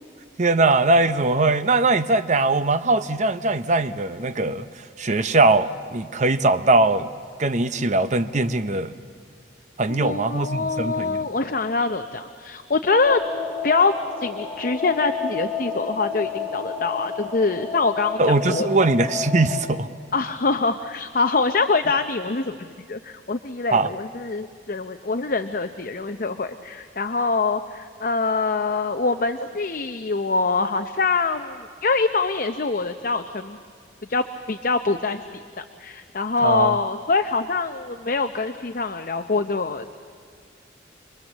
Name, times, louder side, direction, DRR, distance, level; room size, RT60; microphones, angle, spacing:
voice 1, 0.4-4.7 5.0-7.1 7.4-8.9 9.8-11.3 18.2-19.9 23.7-23.9 36.4-36.8, right 2 dB, 40° right, 11 dB, 0.7 m, -21 dB
voice 2, 9.9-13.2 13.6-13.9 14.2-18.7 20.1-33.6 34.1-35.2 35.6-39.9, left 4 dB, 50° left, 8 dB, 0.7 m, -24 dB
sound 1, 13.1-19.6, left 5 dB, 20° left, 3.5 m, -31 dB
28.0 x 21.5 x 7.4 m, 2.1 s
head